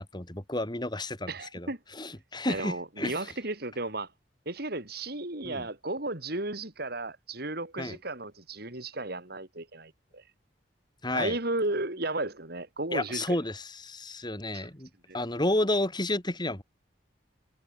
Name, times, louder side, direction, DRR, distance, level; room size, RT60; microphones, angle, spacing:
voice 1, 0.0-1.7 2.0-3.3 5.4-5.7 7.8-8.0 11.0-11.3 12.9-14.9 15.1-16.6, left 1 dB, 25° left, 3.2 m, -31 dB
voice 2, 1.3-1.8 2.5-4.1 4.5-10.2 11.1-13.4 14.5-14.7 15.1-15.2, right 2 dB, 55° right, 4.2 m, -34 dB
head